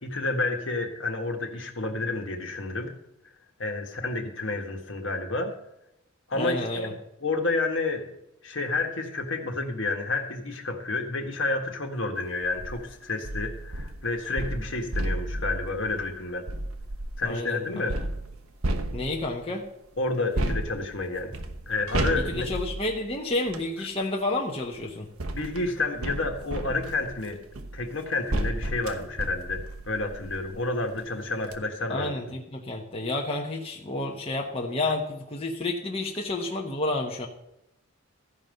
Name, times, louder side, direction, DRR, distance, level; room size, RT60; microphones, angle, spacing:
voice 1, 0.0-2.9 3.6-5.5 6.3-7.0 7.2-8.1 8.4-16.4 17.2-18.0 20.0-21.3 21.7-22.5 25.3-27.4 27.7-32.2, left 3 dB, 65° left, 3 dB, 1.7 m, -30 dB
voice 2, 6.4-6.9 17.2-17.8 18.9-19.7 22.2-25.1 31.9-37.3, left 2 dB, 25° left, 0 dB, 1.1 m, -30 dB
sound 1, 12.4-12.8 13.2-17.3 17.9-19.4 20.3-23.7 24.7-30.6 31.0-31.1 31.4-31.6, right 1 dB, 90° right, 1.1 m, -33 dB
14.0 x 5.4 x 7.7 m, 0.83 s
head